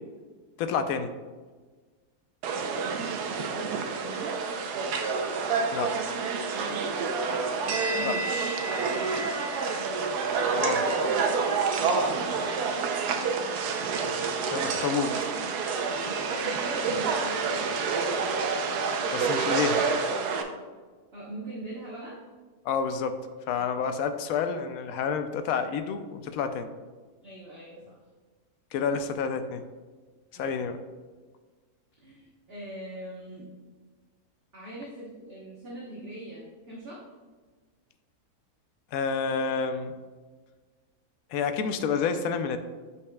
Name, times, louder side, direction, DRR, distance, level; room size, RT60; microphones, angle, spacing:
voice 1, 0.6-1.1 5.7-5.9 8.0-8.2 10.5-10.8 14.5-15.3 19.1-19.8 22.6-23.2 23.5-26.7 28.7-29.6 30.3-30.8 38.9-40.0 41.3-42.6, left 6 dB, 70° left, 9 dB, 0.9 m, -29 dB
sound 1, 2.4-20.4, right 4 dB, 85° right, 1.2 m, -28 dB
voice 2, 3.2-4.4 6.5-6.9 8.9-9.3 10.5-10.7 13.1-13.6 16.0-18.5 21.1-22.2 23.5-23.7 27.2-28.0 30.3-30.6 32.0-33.5 34.5-37.0, right 1 dB, 45° right, -6 dB, 1.2 m, -42 dB
8.3 x 5.5 x 2.2 m, 1.4 s
omnidirectional pair, 1.7 m